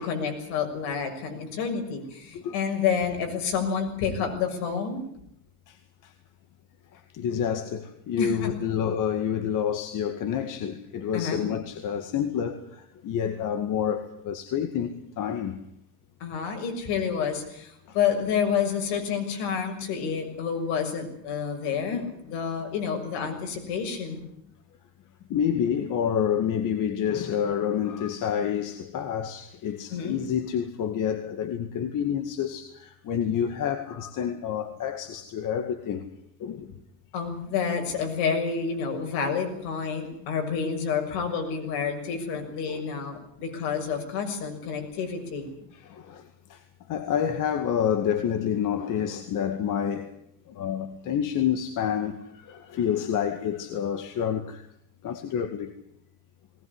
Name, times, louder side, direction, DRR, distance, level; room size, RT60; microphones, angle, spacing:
voice 1, 0.0-5.0 8.2-8.5 11.1-11.4 16.2-24.2 29.9-30.2 37.1-45.5, left 6 dB, 80° left, 6.6 m, -29 dB
voice 2, 7.1-12.6 13.0-15.6 21.9-22.1 25.3-36.1 36.4-36.7 42.7-42.8 46.1-46.2 46.5-46.6 46.9-50.1 50.6-52.2 52.5-54.6 55.0-55.7, left 8 dB, 55° left, 2.1 m, -28 dB
20.0 x 19.5 x 9.7 m
cardioid pair, 115°, 38 cm